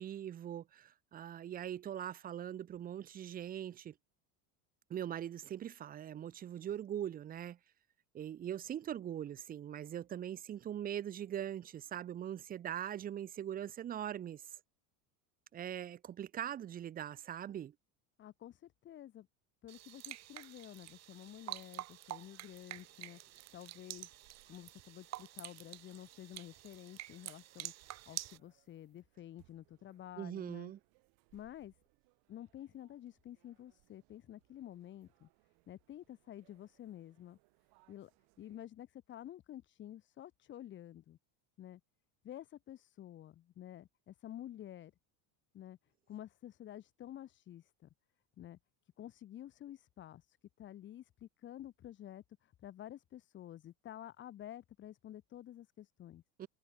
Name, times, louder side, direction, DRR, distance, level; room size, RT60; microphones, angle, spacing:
voice 1, 0.0-3.9 4.9-7.6 8.1-14.6 15.5-17.7 30.2-30.8 56.4-56.5, right 10 dB, 20° right, 0.5 m, -41 dB
voice 2, 18.2-19.3 19.6-23.2 23.5-24.2 24.5-27.7 28.1-30.7 31.3-31.7 32.3-35.3 35.7-37.4 37.9-38.1 38.4-41.2 41.6-41.8 42.2-44.9 45.5-45.8 46.1-47.9 48.4-48.6 49.0-56.2, left 12 dB, 30° left, 0.7 m, -51 dB
sound 1, 19.7-28.4, right 15 dB, 40° right, 1.0 m, -48 dB
sound 2, 22.7-38.6, right 33 dB, 65° right, 2.7 m, -73 dB
supercardioid pair, 130°, 41 cm